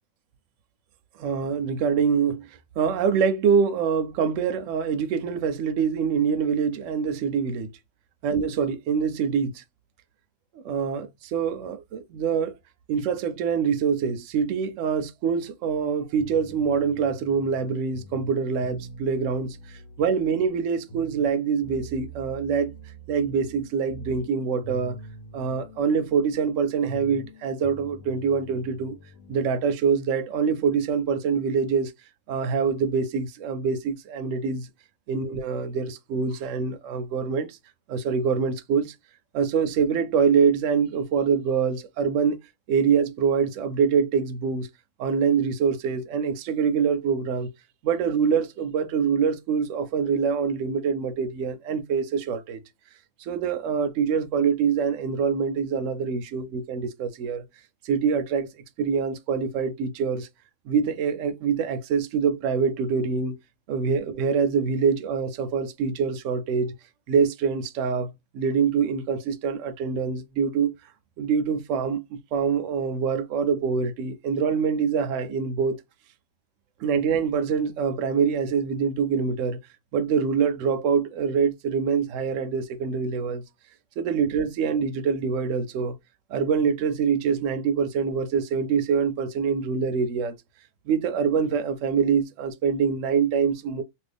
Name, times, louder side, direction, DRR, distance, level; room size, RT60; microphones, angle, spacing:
voice 1, 1.2-2.5 2.8-7.7 8.2-9.6 10.5-12.5 12.9-22.7 23.1-25.0 25.3-29.0 29.3-31.9 32.3-34.7 35.1-37.6 37.9-38.9 39.3-42.4 42.7-44.7 45.0-47.5 47.8-52.6 53.2-57.4 57.8-58.5 58.8-60.3 60.7-63.4 63.7-66.7 67.1-68.1 68.3-70.7 71.2-72.0 72.3-75.8 76.8-79.6 79.9-83.4 84.0-85.9 86.3-90.3 90.9-93.8, right 6 dB, 70° right, 0.9 m, -25 dB
sound 1, 16.2-29.5, right 2 dB, 85° left, 1.3 m, -45 dB
2.8 x 2.6 x 3.4 m
omnidirectional pair, 1.4 m